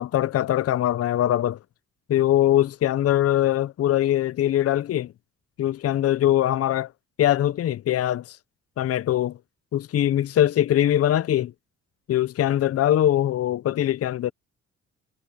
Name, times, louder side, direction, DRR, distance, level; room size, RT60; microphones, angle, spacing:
voice 1, 0.0-1.6 2.1-5.1 5.6-6.9 7.2-8.4 8.8-9.4 9.7-11.5 12.1-14.3, left 12 dB, 50° left, 0.6 m, -22 dB
cardioid pair, 90°, 30 cm